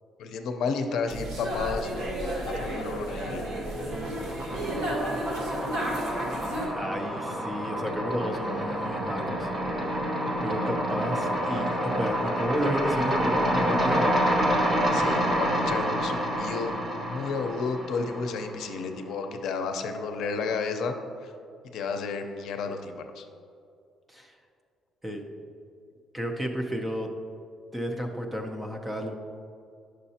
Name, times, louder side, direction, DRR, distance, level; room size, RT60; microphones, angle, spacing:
voice 1, 0.2-2.1 2.4-3.5 14.9-20.9 21.2-21.3 21.7-23.2, left 4 dB, 65° left, 6 dB, 0.6 m, -32 dB
sound 1, 1.1-6.7, right 1 dB, 60° right, 1.9 m, -32 dB
sound 2, 2.5-3.3 3.6-18.7, equal, 25° right, 1.2 m, -28 dB
voice 2, 4.4-5.1 6.7-9.5 10.4-14.1 24.1-24.3 25.0-25.2 26.1-27.1 27.7-29.1, equal, 5° right, 2 dB, 0.6 m, -32 dB
10.0 x 6.4 x 2.8 m, 2.4 s
cardioid pair, 170°, 0 cm